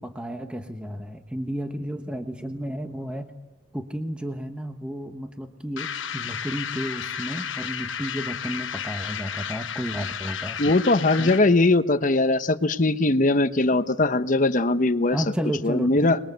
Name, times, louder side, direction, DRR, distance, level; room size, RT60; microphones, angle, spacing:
voice 1, 0.0-3.3 3.7-10.6 11.2-11.4 15.1-16.1, equal, 5° right, 6 dB, 1.1 m, -32 dB
sound 1, 5.8-11.5, left 8 dB, 90° left, 1.0 m, -33 dB
voice 2, 10.6-15.2 15.6-16.2, left 2 dB, 45° left, 11 dB, 1.0 m, -20 dB
27.0 x 21.0 x 8.1 m, 1.1 s
head